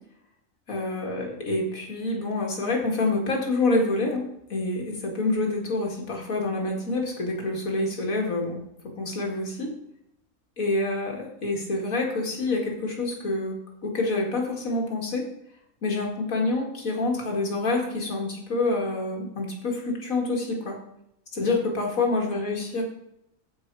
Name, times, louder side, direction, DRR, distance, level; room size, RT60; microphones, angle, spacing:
voice 1, 0.7-8.6 9.0-9.7 10.6-13.6 13.8-15.3 15.8-20.8 21.3-22.8, left 2 dB, 80° left, 0 dB, 2.5 m, -27 dB
14.5 x 5.1 x 4.7 m, 0.79 s
omnidirectional pair, 1.4 m